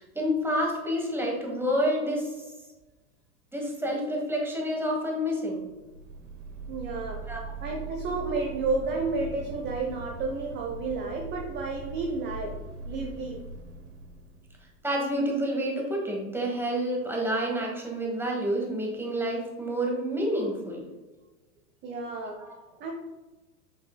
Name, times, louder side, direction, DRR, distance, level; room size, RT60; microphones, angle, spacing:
voice 1, 0.0-2.4 3.5-5.6 7.3-7.4 14.8-20.9 22.4-22.6, equal, 5° right, -1 dB, 1.7 m, -29 dB
sound 1, 5.6-15.0, right 4 dB, 55° right, 0.8 m, -41 dB
voice 2, 6.7-7.2 7.6-12.6 12.9-13.4 21.8-22.4 22.8-22.9, right 3 dB, 25° right, 1 dB, 0.7 m, -31 dB
7.8 x 6.0 x 2.2 m, 1.2 s
hypercardioid pair, 100°, 46 cm